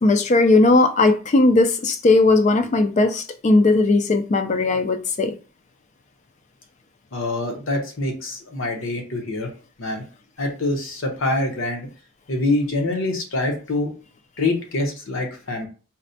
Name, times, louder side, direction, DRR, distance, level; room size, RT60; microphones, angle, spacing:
voice 1, 0.0-5.3, left 2 dB, 30° left, 0.3 m, -17 dB
voice 2, 7.1-9.5 9.8-10.0 10.4-11.9 12.3-13.9 14.4-15.7, left 2 dB, 65° left, 0.8 m, -25 dB
4.1 x 2.1 x 2.7 m
head